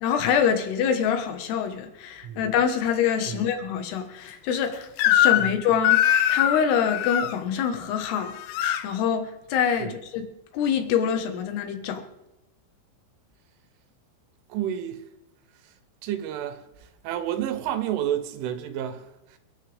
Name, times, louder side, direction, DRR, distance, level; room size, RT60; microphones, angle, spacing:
voice 1, 0.0-10.2 10.5-12.0, left 7 dB, 65° left, 3.3 m, -25 dB
Crying sobbing / Screech, 5.0-5.6 5.8-7.3 8.2-8.8, left 11 dB, 85° left, 3.1 m, -21 dB
voice 2, 14.5-15.1 16.0-16.7 17.0-19.4, right 10 dB, 80° right, 3.5 m, -30 dB
28.5 x 9.7 x 3.5 m
omnidirectional pair, 5.6 m